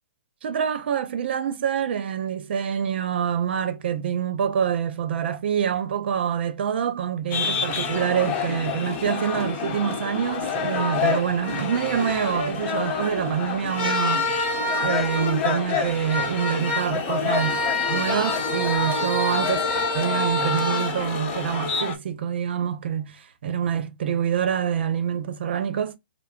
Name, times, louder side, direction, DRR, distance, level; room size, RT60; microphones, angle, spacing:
voice 1, 0.4-14.3 14.8-17.6 17.9-26.0, right 8 dB, 60° right, 0.7 m, -26 dB
sound 1, 7.3-21.9, left 4 dB, 30° left, 1.0 m, -26 dB
4.8 x 2.0 x 2.4 m
hypercardioid pair, 145°, 6 cm